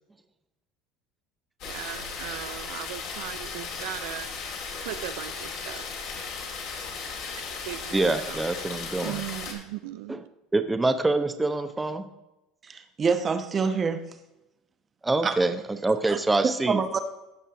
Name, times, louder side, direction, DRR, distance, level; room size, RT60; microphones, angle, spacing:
sound 1, 1.6-9.5, left 5 dB, 65° left, 2.4 m, -36 dB
voice 1, 1.6-4.3 4.8-6.1 7.2-8.4 9.0-10.2, right 14 dB, 80° right, 0.4 m, -38 dB
voice 2, 7.9-9.2 10.1-10.2 10.5-12.1 15.0-17.0, right 2 dB, 15° right, 0.8 m, -25 dB
voice 3, 12.6-14.0 15.2-15.4 16.1-16.2 16.7-17.0, right 5 dB, 30° right, 1.1 m, -26 dB
15.5 x 5.5 x 3.8 m
supercardioid pair, 95°, 0 cm